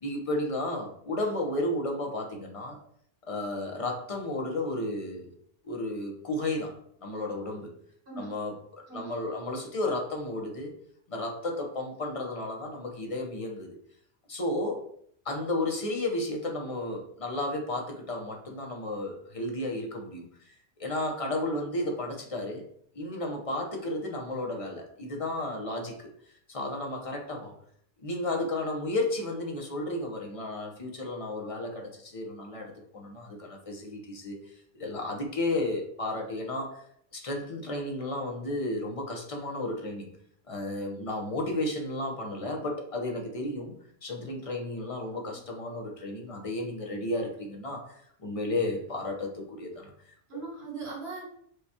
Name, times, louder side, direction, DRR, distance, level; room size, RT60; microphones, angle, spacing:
voice 1, 0.0-2.8 3.2-5.3 5.6-6.7 7.0-7.7 8.2-10.7 11.1-13.8 14.3-14.8 15.2-20.5 20.8-22.6 22.9-26.1 26.5-27.5 28.0-34.4 34.8-36.8 37.1-40.1 40.5-43.7 44.0-49.9, left 2 dB, 35° left, 1 dB, 0.7 m, -33 dB
voice 2, 8.9-9.2 45.1-45.4 50.3-51.2, right 4 dB, 60° right, -4 dB, 1.7 m, -40 dB
6.5 x 2.3 x 2.8 m, 0.66 s
omnidirectional pair, 1.2 m